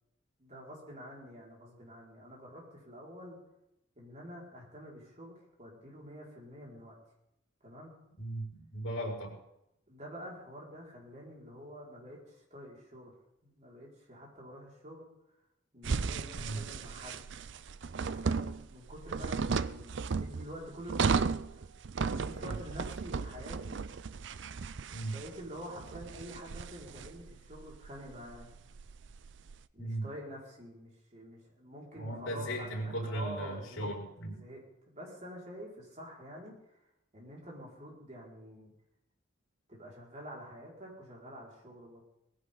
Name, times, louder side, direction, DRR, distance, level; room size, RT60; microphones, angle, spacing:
voice 1, 0.4-3.4 4.0-7.0 7.6-7.9 9.9-13.1 13.4-15.1 15.7-17.2 17.8-21.3 22.0-23.8 25.1-28.5 29.7-33.9 34.3-36.8 37.1-38.7 39.7-42.0, equal, 35° right, -3 dB, 5.3 m, -47 dB
voice 2, 8.2-9.4 16.3-16.6 22.3-22.5 24.9-25.2 29.8-30.1 31.9-34.3, right 1 dB, 70° left, -1 dB, 5.6 m, -37 dB
sound 1, 15.8-29.6, right 5 dB, 60° right, 0.5 m, -35 dB
20.0 x 16.0 x 4.0 m, 0.84 s
head